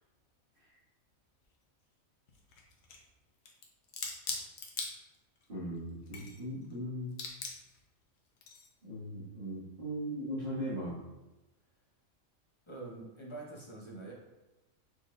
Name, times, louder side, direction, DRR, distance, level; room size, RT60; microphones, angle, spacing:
sound 1, 1.4-1.5 2.3-3.1 3.5-5.5 5.9-6.8 7.1-7.8 8.4-8.7, left 4 dB, 80° left, 1.1 m, -41 dB
voice 1, 5.5-7.1 8.8-11.0, equal, 45° right, -8 dB, 1.8 m, -38 dB
voice 2, 12.7-14.1, right 2 dB, 25° left, -3 dB, 0.8 m, -45 dB
5.1 x 4.1 x 2.4 m, 1.0 s
omnidirectional pair, 1.4 m